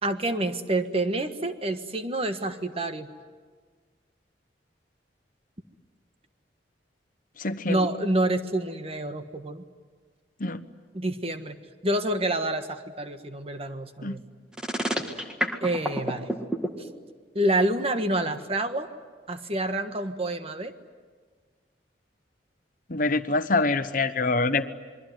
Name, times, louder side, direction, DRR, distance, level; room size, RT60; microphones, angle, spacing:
voice 1, 0.0-3.1 7.7-9.6 10.9-11.6 11.8-14.2 15.6-16.3 16.8-16.9 17.3-18.9 19.3-20.7, right 1 dB, 35° right, 8 dB, 1.5 m, -28 dB
voice 2, 7.4-7.9 10.4-10.6 14.0-14.2 22.9-24.7, left 3 dB, 50° left, 11 dB, 1.1 m, -25 dB
sound 1, 14.5-16.7, equal, 5° right, 1.8 m, -27 dB
27.5 x 22.5 x 9.3 m, 1.5 s
head